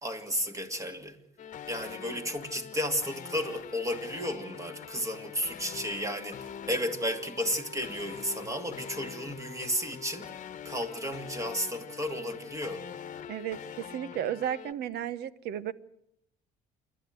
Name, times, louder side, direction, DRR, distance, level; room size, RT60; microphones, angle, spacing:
voice 1, 0.0-1.2 1.7-10.3 10.6-12.8, equal, 20° right, 2.6 m, -33 dB
sound 1, 1.4-14.7, left 8 dB, 50° left, 1.2 m, -44 dB
voice 2, 13.3-15.7, right 10 dB, 75° right, 1.1 m, -34 dB
27.5 x 11.5 x 9.2 m
cardioid pair, 110°, 17 cm